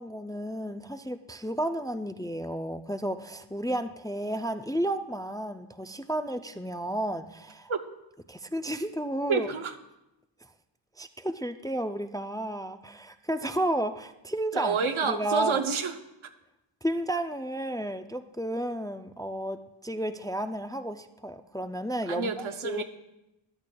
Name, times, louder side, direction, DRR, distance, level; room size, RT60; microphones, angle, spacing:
voice 1, 0.0-7.7 8.3-9.5 11.0-15.6 16.8-22.8, right 1 dB, 10° left, 8 dB, 0.3 m, -32 dB
voice 2, 9.3-9.7 14.5-15.9 22.1-22.8, right 5 dB, 85° right, 7 dB, 0.8 m, -28 dB
13.5 x 10.5 x 2.3 m, 0.93 s
wide cardioid pair, 60°, 47 cm